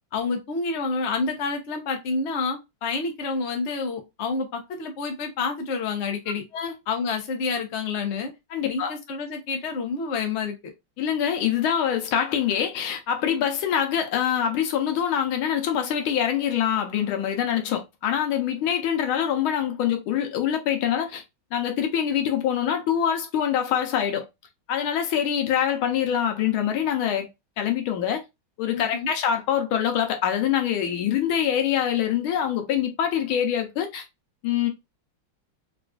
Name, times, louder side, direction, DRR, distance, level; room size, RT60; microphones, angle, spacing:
voice 1, 0.1-6.4 6.9-8.3 8.6-10.5 28.7-29.1, left 4 dB, 70° left, 0.6 m, -28 dB
voice 2, 8.5-8.9 11.0-21.2 21.5-24.3 24.7-27.3 27.6-28.2 28.6-34.0 34.4-34.7, left 9 dB, 90° left, 1.5 m, -24 dB
3.9 x 2.4 x 2.3 m
omnidirectional pair, 2.3 m